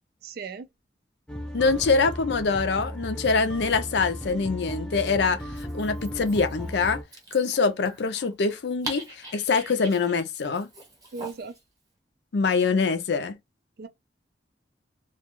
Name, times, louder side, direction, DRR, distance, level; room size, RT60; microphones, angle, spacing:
voice 1, 0.2-0.7 11.1-11.6 13.8-13.9, right 5 dB, 55° right, 0.4 m, -36 dB
sound 1, 1.3-7.0, equal, 5° left, 0.4 m, -36 dB
voice 2, 1.5-5.4 5.7-7.0 7.3-10.7 12.3-13.3, left 4 dB, 65° left, 0.5 m, -24 dB
Dog, 5.4-11.6, right 2 dB, 20° right, 0.8 m, -43 dB
2.4 x 2.2 x 3.0 m
head